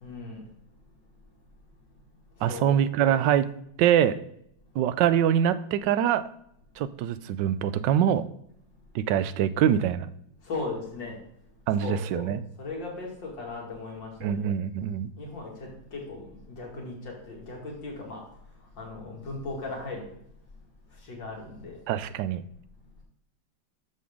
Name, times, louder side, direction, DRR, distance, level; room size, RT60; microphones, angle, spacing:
voice 1, 0.0-0.4 2.4-2.7 10.5-11.1 11.8-12.3 12.6-14.5 15.2-16.3 16.6-18.2 18.8-20.0 21.1-21.8, left 3 dB, 75° left, -1 dB, 2.6 m, -37 dB
voice 2, 2.4-3.5 3.8-4.2 4.8-6.2 6.8-8.2 8.9-10.1 11.7-12.4 14.2-15.1 21.9-22.5, right 10 dB, 75° right, 14 dB, 1.2 m, -24 dB
11.0 x 6.5 x 3.6 m, 0.74 s
omnidirectional pair, 2.0 m